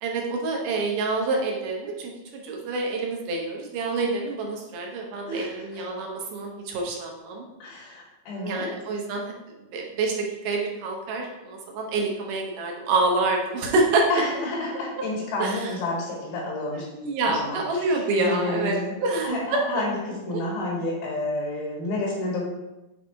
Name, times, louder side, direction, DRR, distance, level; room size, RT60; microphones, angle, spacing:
voice 1, 0.0-7.5 8.4-9.3 9.7-10.1 10.4-14.0 15.4-15.7 16.9-19.3 20.3-20.4, right 3 dB, 70° right, 0 dB, 2.4 m, -27 dB
voice 2, 5.3-5.8 7.6-8.7 14.1-16.9 17.3-19.0 19.2-22.4, left 2 dB, 70° left, -5 dB, 3.3 m, -30 dB
7.4 x 4.0 x 4.6 m, 0.99 s
omnidirectional pair, 4.3 m